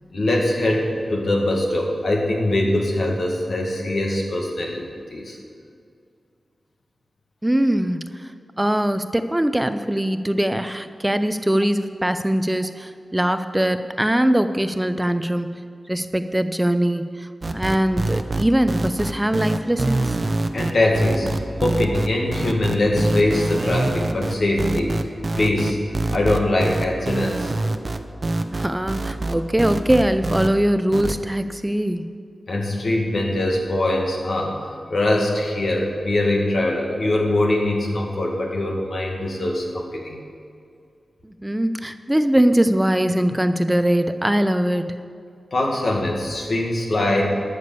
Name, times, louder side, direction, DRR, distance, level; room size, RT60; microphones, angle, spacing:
voice 1, 0.0-4.9 5.1-5.4 20.5-25.0 25.3-25.8 26.1-27.5 32.5-34.6 34.9-40.2 45.5-47.2, left 1 dB, 70° left, 0 dB, 2.1 m, -22 dB
voice 2, 7.4-8.3 8.6-15.6 15.9-20.2 28.5-32.1 41.2-45.0, right 1 dB, 10° right, 10 dB, 0.5 m, -21 dB
sound 1, 17.4-30.5 30.9-31.2, right 2 dB, 45° right, 0.7 m, -25 dB
12.5 x 6.9 x 6.9 m, 2.4 s
wide cardioid pair, 65°, 0 cm